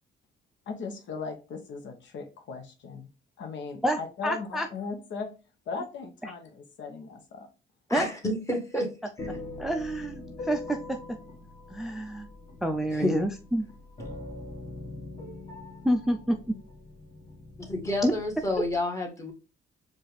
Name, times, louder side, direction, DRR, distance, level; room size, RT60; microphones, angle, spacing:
voice 1, 0.7-3.1 3.4-5.3 5.7-7.5, left 4 dB, 70° left, 0.9 m, -38 dB
voice 2, 3.8-4.7 6.2-6.3 7.9-8.1 9.6-11.2 11.7-12.3 12.6-13.7 15.8-16.5 18.0-18.1, equal, ahead, 0.4 m, -28 dB
voice 3, 7.9-8.9 9.2-9.3 12.9-13.2 17.7-19.3, left 1 dB, 15° left, 1.5 m, -29 dB
sound 1, 9.2-18.8, left 2 dB, 30° left, 1.7 m, -43 dB
4.4 x 2.5 x 3.3 m
cardioid pair, 90°, 20 cm